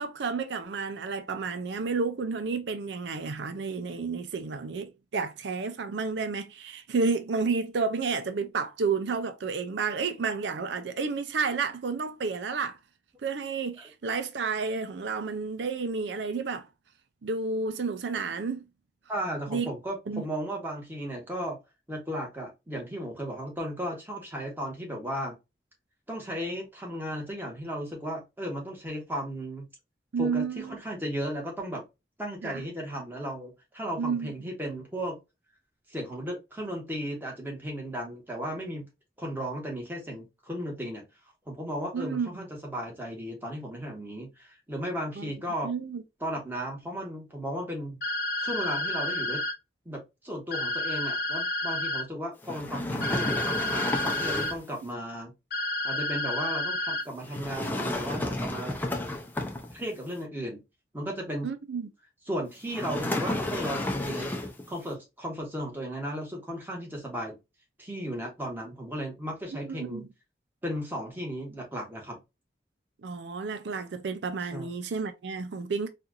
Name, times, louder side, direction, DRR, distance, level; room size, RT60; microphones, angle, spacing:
voice 1, 0.0-12.8 13.2-16.7 17.2-18.6 19.5-19.7 20.1-20.3 30.1-30.8 32.4-32.6 34.0-34.3 41.9-42.4 45.2-45.3 45.6-46.0 61.4-61.9 69.6-70.1 73.0-75.9, right 4 dB, 85° right, 0.5 m, -31 dB
voice 2, 19.1-21.6 21.9-25.4 26.1-29.6 30.2-31.8 32.2-35.2 35.9-38.8 39.2-41.0 41.5-45.7 46.2-48.0 48.4-49.4 49.8-55.3 55.8-58.8 59.7-60.6 60.9-61.5 62.3-64.3 64.7-67.4 67.8-70.0 70.6-72.2 74.5-74.7, equal, 10° right, 1.3 m, -35 dB
sound 1, 48.0-49.5 50.5-52.0 53.0-54.5 55.5-57.0, left 1 dB, 55° left, 0.7 m, -30 dB
sound 2, 52.4-54.7 57.2-60.0 62.7-64.7, left 1 dB, 10° left, 0.5 m, -32 dB
4.3 x 2.5 x 2.5 m
head